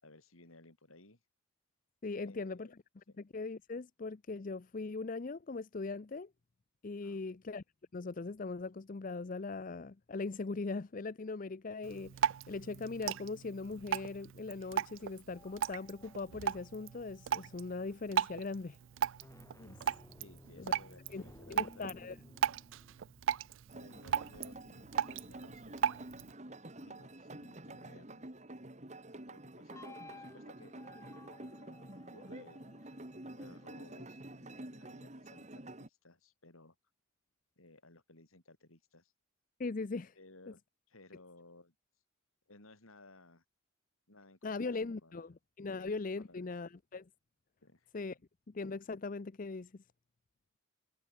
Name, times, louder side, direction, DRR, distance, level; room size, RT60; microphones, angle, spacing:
voice 1, 0.0-1.2 2.1-2.8 3.1-3.2 7.0-7.4 20.2-22.0 23.7-26.1 26.8-28.2 29.3-30.7 32.1-33.0 33.4-36.8 37.6-39.1 40.2-40.6 40.9-41.7 42.5-43.4 44.1-45.2 45.7-45.9 46.2-46.5 47.6-48.2, left 2 dB, 85° left, 4.3 m, -59 dB
voice 2, 2.0-2.7 3.3-6.3 6.8-7.6 7.9-18.8 19.6-19.8 20.6-20.7 21.1-21.2 21.5-22.2 39.6-40.1 44.4-47.1 47.9-48.2 48.5-49.8, left 3 dB, 40° left, 0.5 m, -40 dB
Drip, 11.8-26.3, right 8 dB, 65° right, 0.3 m, -37 dB
sound 1, 15.3-18.0 19.0-25.9 29.7-33.9, left 2 dB, 15° left, 1.0 m, -58 dB
sound 2, 23.7-35.9, right 1 dB, 35° right, 2.4 m, -49 dB
head